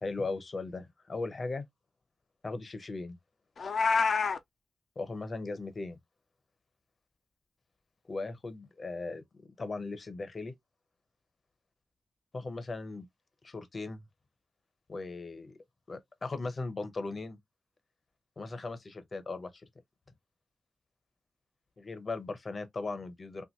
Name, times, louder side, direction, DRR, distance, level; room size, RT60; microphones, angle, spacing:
voice 1, 0.0-1.6 2.4-3.2 5.0-6.0 8.1-9.2 9.6-10.5 12.3-13.0 13.4-14.0 14.9-15.5 15.9-17.4 18.4-19.5 21.8-23.4, left 3 dB, 50° left, 0.8 m, -38 dB
Meow, 3.6-4.4, left 5 dB, 70° left, 0.5 m, -27 dB
3.0 x 2.5 x 2.9 m
wide cardioid pair, 90°, 0 cm